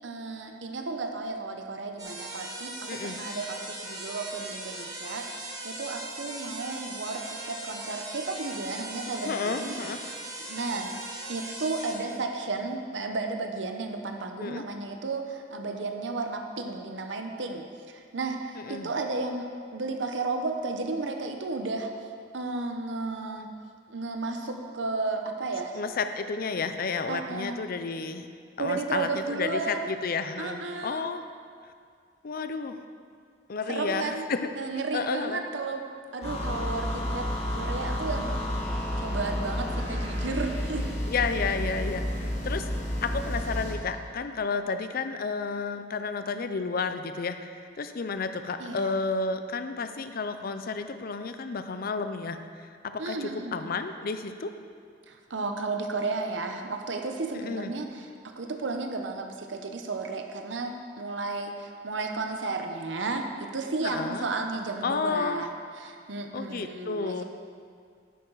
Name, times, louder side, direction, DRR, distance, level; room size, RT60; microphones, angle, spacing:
voice 1, 0.0-9.8 10.4-10.9 11.3-19.5 19.7-21.9 22.3-23.5 23.9-25.8 27.1-27.6 28.6-29.9 30.4-31.0 33.7-34.3 34.5-35.8 36.1-37.3 37.5-38.6 39.0-40.8 48.6-48.9 53.0-53.7 55.1-65.5 65.7-67.2, right 3 dB, 75° right, 4 dB, 0.8 m, -33 dB
sound 1, 2.0-11.9, right 1 dB, 20° right, 1.6 m, -39 dB
voice 2, 9.2-10.0 14.4-14.6 18.5-18.9 25.7-28.3 28.6-31.2 32.2-32.8 33.5-34.5 34.9-35.4 41.1-42.7 43.0-52.4 52.8-54.5 57.3-57.7 63.8-64.3 64.8-65.4 66.3-67.2, left 4 dB, 55° left, 9 dB, 0.5 m, -31 dB
sound 2, 36.2-43.8, left 1 dB, 35° left, 2.2 m, -31 dB
10.0 x 8.7 x 3.9 m, 2.2 s
head